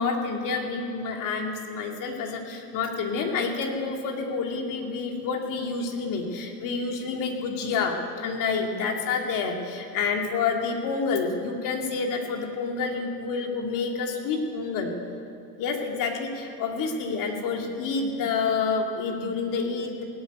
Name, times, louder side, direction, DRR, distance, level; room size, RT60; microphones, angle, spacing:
voice 1, 0.0-14.9 15.6-20.0, left 4 dB, 40° left, 2 dB, 2.5 m, -28 dB
17.5 x 8.2 x 9.4 m, 2.5 s
supercardioid pair, 120°, 48 cm